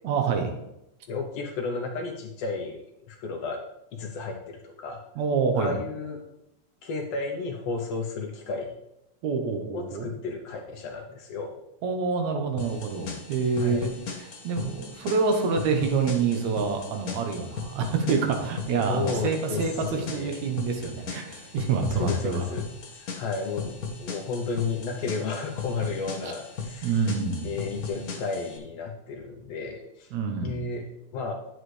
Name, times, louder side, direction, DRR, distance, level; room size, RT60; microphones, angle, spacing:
voice 1, 0.0-0.5 5.2-5.7 9.2-10.1 11.8-22.5 26.2-26.3 26.8-27.5 30.1-30.6, right 5 dB, 75° right, 4 dB, 2.3 m, -27 dB
voice 2, 1.1-2.8 3.1-3.6 3.9-5.0 5.6-6.2 6.8-8.7 9.7-11.6 13.6-14.0 18.9-19.7 19.9-20.5 21.9-27.0 27.4-30.1 30.4-31.3, left 4 dB, 70° left, 3 dB, 1.7 m, -33 dB
sound 1, 12.6-28.6, left 4 dB, 90° left, 0.8 m, -38 dB
9.5 x 7.9 x 3.3 m, 0.85 s
omnidirectional pair, 3.3 m